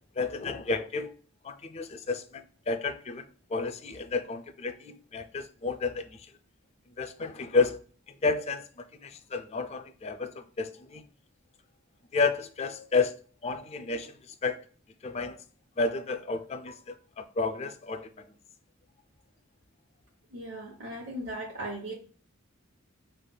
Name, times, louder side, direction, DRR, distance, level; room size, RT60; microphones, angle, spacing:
voice 1, 0.2-1.1 1.4-2.2 2.7-3.2 3.5-6.0 7.0-7.8 8.2-8.6 9.0-10.3 10.6-11.0 12.1-13.1 13.4-14.1 14.4-14.6 15.0-15.4 15.8-16.7 17.2-18.1, left 4 dB, 30° left, 0.4 m, -30 dB
voice 2, 20.3-21.9, right 1 dB, 60° right, 1.1 m, -37 dB
5.7 x 3.3 x 2.2 m
head